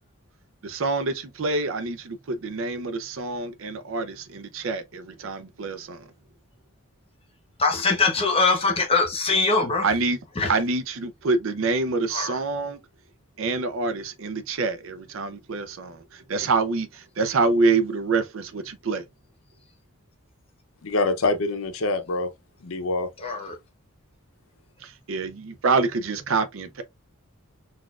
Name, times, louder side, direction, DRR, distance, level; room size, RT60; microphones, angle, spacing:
voice 1, 0.6-6.1 9.8-10.2 10.5-12.8 13.4-19.0 24.8-26.8, right 3 dB, 60° right, 0.5 m, -26 dB
voice 2, 7.6-9.8 10.4-10.5 12.1-12.4 23.2-23.5, left 3 dB, 25° left, 0.8 m, -22 dB
voice 3, 20.8-22.3 22.6-23.1, left 2 dB, 65° left, 0.6 m, -25 dB
4.1 x 2.4 x 2.3 m
head